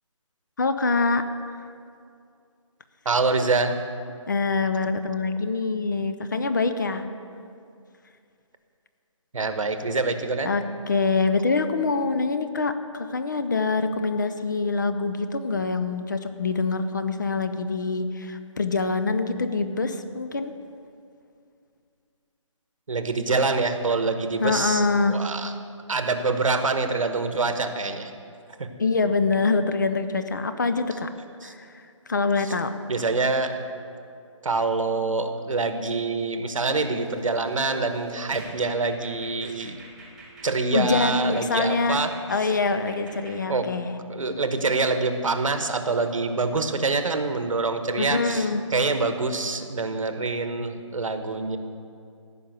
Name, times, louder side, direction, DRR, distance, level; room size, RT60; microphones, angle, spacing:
voice 1, 0.6-1.2 4.3-7.1 10.5-20.5 24.4-25.2 28.8-31.1 31.4-31.8 32.1-32.7 40.7-42.0 42.3-44.0 48.0-48.6, left 4 dB, 35° left, 9 dB, 0.6 m, -25 dB
voice 2, 3.0-3.8 9.3-10.5 22.9-25.5 25.9-28.1 28.6-28.7 31.4-31.5 32.4-32.5 32.9-33.6 34.4-39.8 40.4-42.1 42.4-42.5 43.5-43.7 44.1-51.6, right 3 dB, 80° right, 8 dB, 1.2 m, -25 dB
sound 1, 37.0-43.4, right 2 dB, 5° right, 0.7 m, -45 dB
15.0 x 5.6 x 8.0 m, 2.4 s
hypercardioid pair, 170°, 17 cm